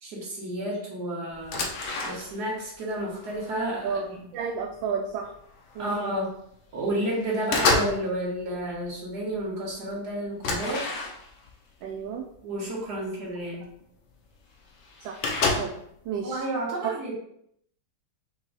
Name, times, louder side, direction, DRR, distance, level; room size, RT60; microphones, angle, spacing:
voice 1, 0.0-1.6 2.0-4.0 5.8-6.3 6.7-10.9 12.4-13.7 16.2-17.1, right 1 dB, 55° right, -5 dB, 2.0 m, -31 dB
sound 1, 1.3-2.6 2.9-4.1 4.7-4.9 5.2-6.1 6.5-6.9 7.2-8.1 8.4-8.9 9.3-9.4 9.7-9.8 10.4-11.5 12.3-12.4 12.9-13.0 14.1-14.2 14.4-14.5 14.7-16.0, left 3 dB, 70° left, 1.3 m, -29 dB
voice 2, 3.8-5.3 5.7-6.1 11.8-12.3 13.0-13.1 15.0-15.2 15.5-15.8 16.0-16.4 16.8-16.9, right 6 dB, 80° right, 0 dB, 1.3 m, -32 dB
5.7 x 2.3 x 3.9 m, 0.71 s
omnidirectional pair, 2.0 m